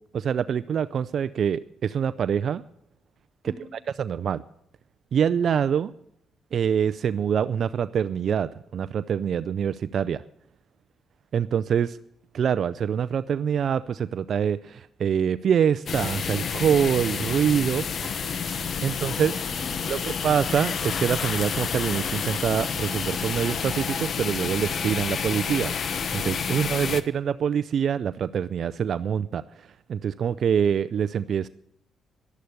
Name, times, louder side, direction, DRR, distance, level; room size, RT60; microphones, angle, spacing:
voice 1, 0.1-2.6 4.0-4.4 5.1-5.9 6.5-10.2 11.3-12.0 12.3-17.9 18.8-19.3 19.9-20.0 20.2-25.7 26.1-31.5, right 8 dB, 60° right, 15 dB, 0.5 m, -25 dB
voice 2, 3.4-3.8 18.0-20.0, equal, 5° right, 1 dB, 3.4 m, -47 dB
sound 1, 15.9-27.0, left 6 dB, 55° left, 1.0 m, -29 dB
12.5 x 11.5 x 6.6 m, 0.73 s
cardioid pair, 90°, 0 cm